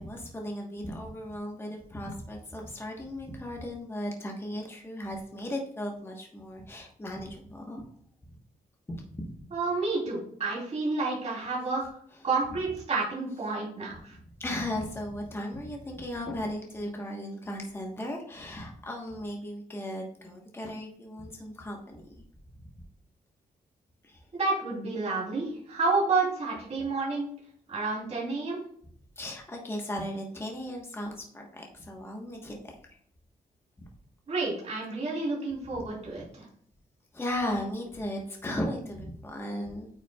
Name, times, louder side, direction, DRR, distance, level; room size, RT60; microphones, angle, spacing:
voice 1, 0.0-7.9 8.9-9.4 14.4-22.0 24.0-24.2 29.2-32.7 35.7-35.8 37.1-39.9, left 1 dB, 15° left, 0 dB, 1.2 m, -36 dB
voice 2, 9.5-11.8 12.2-14.2 24.3-27.3 27.7-28.6 34.3-36.3, right 3 dB, 45° right, -5 dB, 3.0 m, -30 dB
9.0 x 5.8 x 2.3 m, 0.63 s
wide cardioid pair, 140°, 15 cm